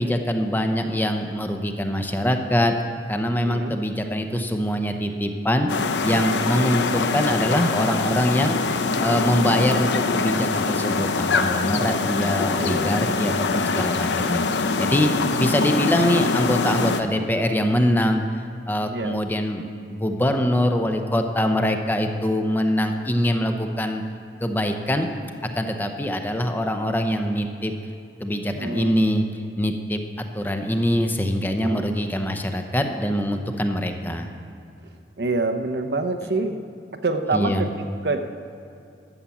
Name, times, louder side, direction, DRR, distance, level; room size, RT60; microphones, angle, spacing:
voice 1, 0.0-2.7 3.1-5.7 6.0-8.6 9.0-14.5 14.8-15.1 15.4-18.2 18.7-24.0 24.4-25.1 25.5-27.7 28.2-30.0 30.3-34.3 37.3-37.7, equal, 10° left, 5 dB, 0.7 m, -23 dB
voice 2, 3.4-3.8 12.6-12.9 18.9-19.2 28.5-29.0 31.6-31.9 35.2-36.6 37.0-38.3, right 3 dB, 70° right, 7 dB, 0.8 m, -26 dB
sound 1, 5.7-17.0, left 4 dB, 90° left, 0.7 m, -23 dB
13.0 x 7.4 x 7.1 m, 2.6 s
head